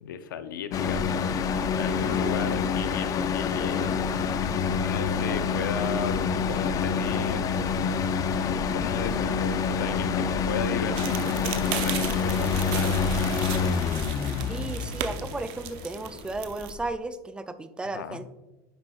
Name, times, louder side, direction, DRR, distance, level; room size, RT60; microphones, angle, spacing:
voice 1, 0.0-1.2 1.7-4.2 4.8-6.2 6.5-7.6 8.7-13.4 17.9-18.2, left 7 dB, 90° left, 11 dB, 0.6 m, -35 dB
sound 1, 0.7-16.9, left 5 dB, 35° left, 0.6 m, -27 dB
sound 2, 11.0-16.7, right 11 dB, 60° right, 0.8 m, -36 dB
voice 2, 14.5-18.3, right 2 dB, 10° right, 11 dB, 0.5 m, -34 dB
9.9 x 5.7 x 2.4 m, 1.1 s
supercardioid pair, 105°, 10 cm